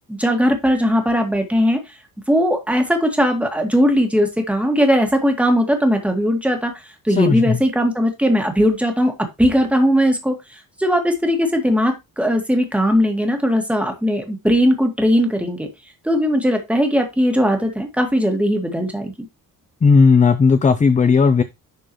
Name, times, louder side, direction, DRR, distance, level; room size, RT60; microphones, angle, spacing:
voice 1, 0.1-2.0 2.3-15.7 16.0-19.1, equal, 5° right, 1.8 m, -19 dB
voice 2, 7.2-7.6 19.8-21.4, left 5 dB, 20° left, 0.4 m, -14 dB
11.0 x 4.5 x 3.0 m
wide cardioid pair, 150°, 35 cm